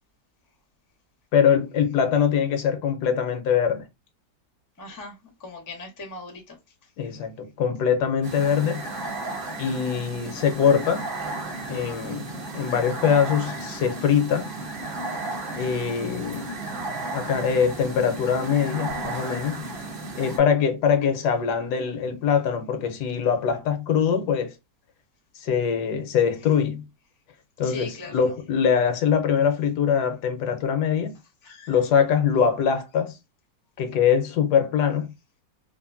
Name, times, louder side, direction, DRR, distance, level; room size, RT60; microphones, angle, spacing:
voice 1, 1.3-3.8 7.0-8.9 9.6-11.1 11.7-14.5 15.6-16.5 17.1-19.6 20.2-24.5 25.4-26.9 27.6-31.1 31.7-33.2 33.8-35.1, left 7 dB, 80° left, 1.2 m, -23 dB
voice 2, 4.8-6.6 27.6-28.2 31.4-31.7, left 3 dB, 25° left, 0.4 m, -39 dB
sound 1, 8.2-20.4, right 2 dB, 60° right, 0.6 m, -34 dB
2.8 x 2.5 x 2.4 m
omnidirectional pair, 1.8 m